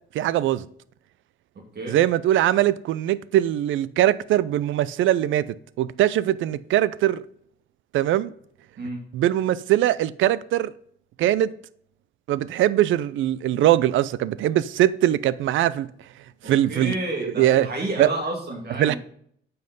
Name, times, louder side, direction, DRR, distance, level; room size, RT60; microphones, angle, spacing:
voice 1, 0.1-0.6 1.9-5.5 5.8-7.2 7.9-8.3 9.1-10.7 11.2-11.5 12.3-15.9 16.5-17.7 18.0-18.1 18.8-18.9, right 13 dB, 80° right, 0.5 m, -21 dB
voice 2, 16.4-19.0, right 1 dB, 55° right, 2.6 m, -30 dB
9.2 x 5.6 x 5.3 m
cardioid pair, 90°, 20 cm